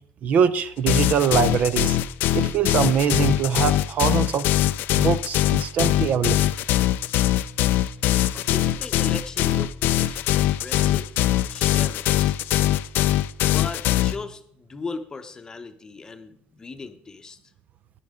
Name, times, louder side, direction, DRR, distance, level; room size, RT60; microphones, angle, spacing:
voice 1, 0.2-2.0 2.3-4.5 4.9-6.4, right 7 dB, 45° right, 14 dB, 0.5 m, -23 dB
sound 1, 0.9-14.1, left 14 dB, 65° left, 0.4 m, -22 dB
voice 2, 8.3-12.4 13.4-17.4, left 4 dB, 20° left, 8 dB, 0.8 m, -38 dB
14.5 x 11.0 x 3.7 m, 0.66 s
cardioid pair, 160°, 4 cm